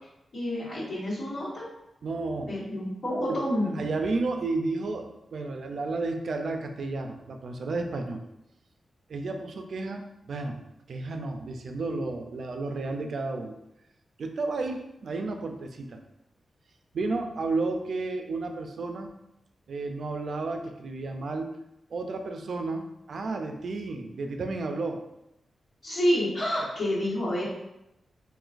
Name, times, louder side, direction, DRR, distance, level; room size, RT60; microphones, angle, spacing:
voice 1, 0.3-1.6 2.5-3.8 25.8-27.5, equal, 70° left, -13 dB, 1.5 m, -28 dB
voice 2, 2.0-2.6 3.8-8.2 9.1-10.6 10.9-13.6 14.2-16.0 16.9-19.1 19.7-21.5 21.9-25.0, right 3 dB, 65° right, 5 dB, 0.4 m, -32 dB
3.8 x 2.5 x 2.5 m, 0.87 s
wide cardioid pair, 125°, 0 cm